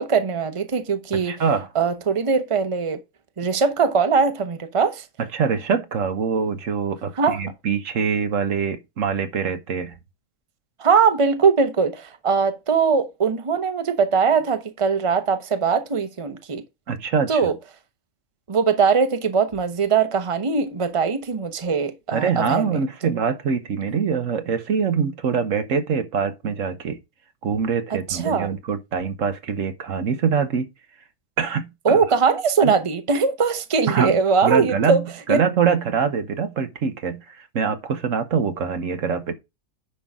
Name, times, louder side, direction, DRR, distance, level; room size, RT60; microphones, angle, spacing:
voice 1, 0.0-1.4 1.7-3.0 3.4-5.0 7.2-7.4 10.8-16.6 17.3-17.5 18.5-22.8 28.1-28.5 31.8-35.0 35.3-35.4, right 5 dB, 25° right, 1.0 m, -21 dB
voice 2, 1.1-1.7 5.2-9.9 16.9-17.5 22.1-27.0 27.4-30.7 31.4-32.0 32.6-32.7 33.9-39.3, right 6 dB, 70° right, 1.4 m, -24 dB
10.0 x 5.7 x 3.6 m
omnidirectional pair, 1.4 m